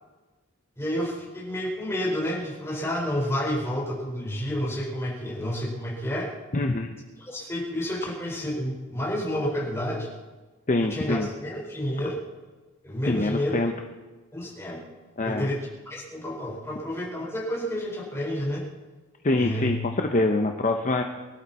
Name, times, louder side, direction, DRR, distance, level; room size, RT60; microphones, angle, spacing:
voice 1, 0.8-6.3 7.3-10.1 10.8-12.2 12.8-13.6 14.3-14.8 15.2-15.6 15.9-18.6 19.4-19.7, equal, 10° left, -4 dB, 4.8 m, -30 dB
voice 2, 6.5-6.9 10.7-11.3 13.1-13.7 15.2-15.5 19.2-21.0, left 2 dB, 35° left, 4 dB, 0.8 m, -24 dB
24.0 x 12.5 x 4.3 m, 1.3 s
head